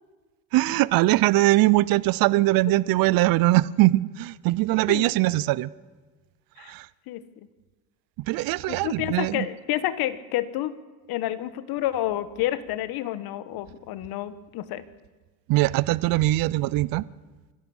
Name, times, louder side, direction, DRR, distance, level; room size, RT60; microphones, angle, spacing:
voice 1, 0.5-5.7 6.6-6.9 8.3-9.5 15.5-17.0, right 18 dB, 60° right, 21 dB, 0.6 m, -21 dB
voice 2, 8.7-10.7 11.1-14.8, left 13 dB, 65° left, 15 dB, 1.4 m, -29 dB
25.0 x 14.5 x 7.2 m, 1.3 s
cardioid pair, 110°, 40 cm